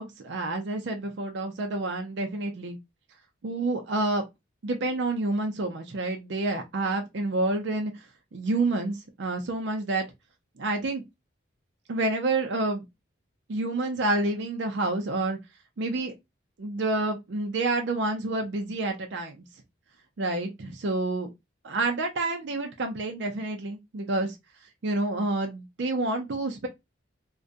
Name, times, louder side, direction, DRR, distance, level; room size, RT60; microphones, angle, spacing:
voice 1, 0.0-2.8 3.4-4.3 4.6-8.0 8.3-10.1 10.6-11.0 11.9-12.9 13.5-15.4 15.8-16.1 16.6-19.4 20.2-21.3 21.6-24.4 24.8-26.7, right 2 dB, 65° right, 0.5 m, -28 dB
2.4 x 2.2 x 2.4 m
head